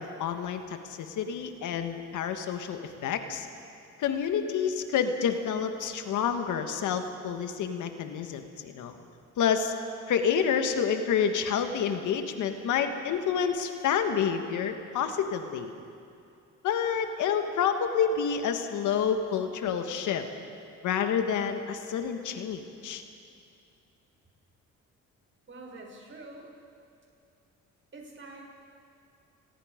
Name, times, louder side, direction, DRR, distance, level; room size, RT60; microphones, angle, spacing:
voice 1, 0.0-3.5 4.0-8.9 9.4-9.7 10.1-15.7 16.6-20.3 20.8-23.0, left 7 dB, 80° left, 7 dB, 1.7 m, -28 dB
voice 2, 25.5-26.5 27.9-28.5, right 2 dB, 40° right, 0 dB, 6.4 m, -45 dB
28.5 x 21.5 x 5.2 m, 2.6 s
cardioid pair, 90°, 30 cm